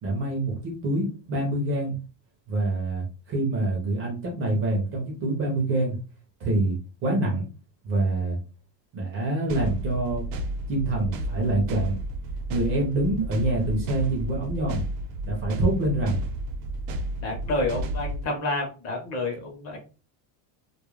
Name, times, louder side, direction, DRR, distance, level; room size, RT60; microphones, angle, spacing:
voice 1, 0.0-2.0 2.5-6.0 6.4-7.4 7.8-8.4 8.9-10.2 10.7-12.0 12.5-14.8 15.3-16.2, right 2 dB, 25° right, -1 dB, 0.4 m, -26 dB
sound 1, 9.5-18.3, right 1 dB, 80° right, 0.7 m, -32 dB
voice 2, 17.2-19.8, left 2 dB, 30° left, 1 dB, 0.7 m, -29 dB
2.3 x 2.1 x 3.0 m, 0.34 s
cardioid pair, 175°, 50 cm